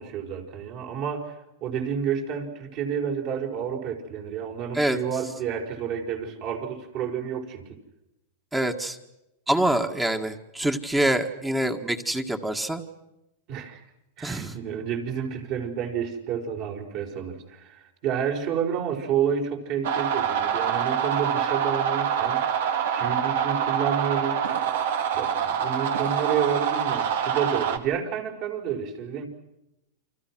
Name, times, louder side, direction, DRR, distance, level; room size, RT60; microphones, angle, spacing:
voice 1, 0.0-7.8 13.5-13.8 14.2-22.4 22.8-24.4 25.1-29.3, right 7 dB, 50° right, 2 dB, 5.1 m, -30 dB
voice 2, 8.5-9.0 9.5-12.8 14.2-14.6, right 1 dB, 10° right, 5 dB, 1.8 m, -25 dB
sound 1, 19.8-27.8, right 8 dB, 70° right, 2.4 m, -25 dB
30.0 x 24.5 x 6.2 m, 0.89 s
hypercardioid pair, 130°, 0 cm